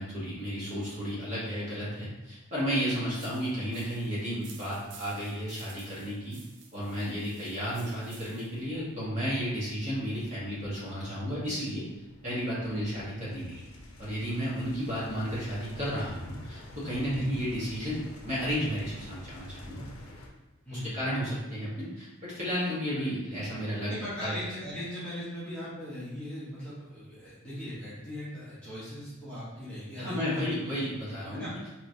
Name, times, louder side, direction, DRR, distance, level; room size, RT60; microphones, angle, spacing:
voice 1, 0.0-6.4 6.7-11.9 12.2-13.7 14.0-19.9 20.7-23.9 24.2-24.4 30.0-31.4, equal, 35° right, -9 dB, 1.1 m, -33 dB
sound 1, 3.1-8.6, right 5 dB, 55° right, 0.5 m, -53 dB
sound 2, 8.6-20.3, left 1 dB, 85° left, 0.5 m, -49 dB
voice 2, 20.6-21.0 23.9-30.5 31.3-31.5, equal, 5° left, -11 dB, 0.9 m, -38 dB
3.0 x 3.0 x 2.6 m, 1.1 s
head